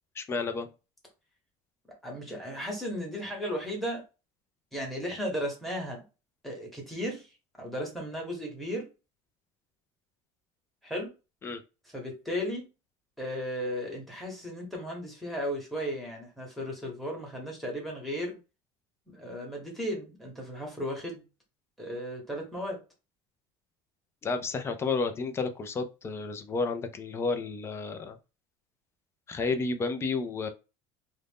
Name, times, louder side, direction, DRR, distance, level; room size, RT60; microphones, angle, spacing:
voice 1, 0.2-0.7 11.4-11.6 24.2-28.2 29.3-30.5, left 4 dB, 20° left, 8 dB, 0.3 m, -31 dB
voice 2, 2.0-4.0 4.7-6.0 6.4-7.3 7.6-8.9 10.8-11.1 11.9-12.6 13.2-18.4 19.1-21.2 21.8-22.8, equal, ahead, 0 dB, 1.0 m, -35 dB
2.5 x 2.1 x 3.4 m, 0.29 s
cardioid pair, 150°, 13 cm